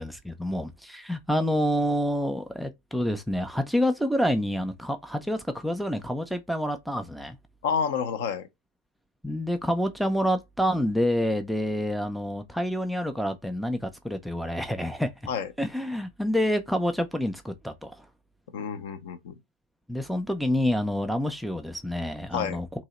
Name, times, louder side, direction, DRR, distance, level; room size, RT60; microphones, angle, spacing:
voice 1, 0.0-7.4 9.2-15.1 15.6-18.1 19.9-22.7, equal, ahead, 0.4 m, -28 dB
voice 2, 7.6-8.5 15.3-15.5 18.5-19.3 22.3-22.6, left 6 dB, 50° left, 0.6 m, -29 dB
2.9 x 2.7 x 4.0 m
figure-of-eight pair, 90°, 0 cm